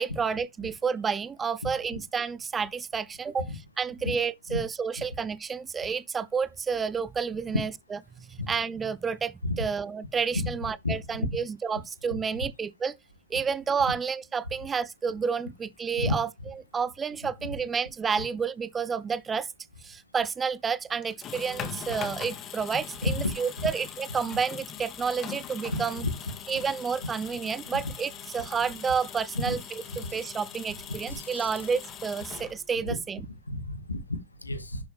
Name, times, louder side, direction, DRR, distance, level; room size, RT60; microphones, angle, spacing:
voice 1, 0.0-3.5 3.8-13.0 13.3-19.5 19.8-26.1 26.5-29.6 30.0-33.3, right 6 dB, 20° right, 0.7 m, -30 dB
sound 1, 21.0-32.9, left 8 dB, 30° left, 2.0 m, -41 dB
voice 2, 25.7-26.1 27.7-27.8 29.3-29.5 30.0-30.1 31.1-31.5 32.9-33.0 33.5-34.8, left 2 dB, 80° left, 1.7 m, -31 dB
11.0 x 6.8 x 3.4 m
figure-of-eight pair, 90°, 0 cm